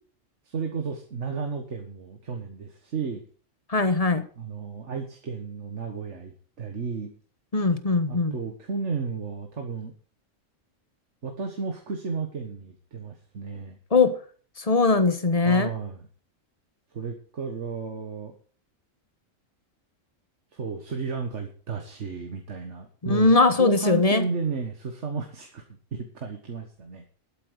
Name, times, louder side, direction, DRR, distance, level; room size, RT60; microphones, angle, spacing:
voice 1, 0.4-3.2 4.4-7.1 8.1-9.9 11.2-13.8 15.4-16.0 16.9-18.3 20.5-25.6 25.9-27.1, right 5 dB, 65° right, 4 dB, 1.8 m, -33 dB
voice 2, 3.7-4.3 7.5-8.3 13.9-14.2 14.6-15.7 23.0-24.2, left 3 dB, 30° left, 10 dB, 1.2 m, -20 dB
12.0 x 8.8 x 6.7 m, 0.43 s
omnidirectional pair, 1.4 m